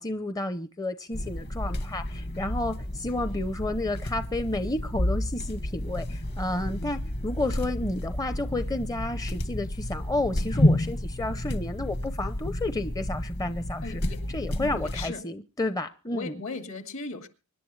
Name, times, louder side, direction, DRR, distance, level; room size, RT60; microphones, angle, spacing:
voice 1, 0.0-14.0 14.3-16.3, left 2 dB, 15° left, 0.6 m, -31 dB
sound 1, 1.1-15.1, left 1 dB, 50° left, 1.4 m, -30 dB
voice 2, 13.8-14.3 14.6-15.2 16.1-17.3, left 3 dB, 65° left, 2.3 m, -37 dB
24.5 x 11.0 x 3.2 m
head